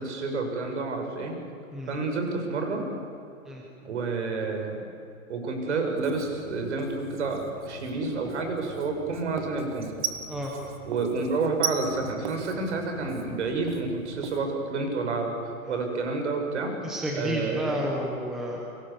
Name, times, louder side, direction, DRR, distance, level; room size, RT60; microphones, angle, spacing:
voice 1, 0.0-1.3 1.9-2.8 3.8-4.8 5.3-9.9 10.8-15.3 15.7-16.7 17.1-17.9, right 3 dB, 55° right, 4 dB, 6.5 m, -29 dB
Writing, 6.0-14.4, right 7 dB, 35° right, 2.0 m, -38 dB
voice 2, 16.8-18.6, equal, ahead, -2 dB, 1.0 m, -31 dB
29.5 x 25.0 x 7.1 m, 2.7 s
hypercardioid pair, 180°, 42 cm